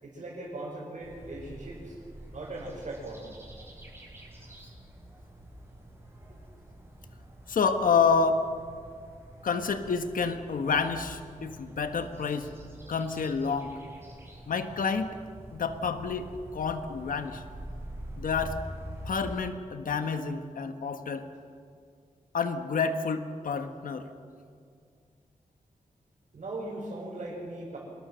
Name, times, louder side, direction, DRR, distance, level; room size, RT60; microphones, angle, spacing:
voice 1, 0.0-2.0 2.3-3.2 6.3-6.4 26.3-27.8, right 2 dB, 60° right, -5 dB, 5.3 m, -39 dB
sound 1, 1.0-19.4, right 1 dB, 15° right, 4.7 m, -46 dB
voice 2, 7.5-8.4 9.4-12.5 12.9-13.7 14.5-15.2 15.5-17.4 18.2-18.6 19.0-21.3 22.3-24.1, left 5 dB, 80° left, 8 dB, 1.3 m, -29 dB
26.0 x 20.0 x 6.4 m, 2.2 s
wide cardioid pair, 175°, 14 cm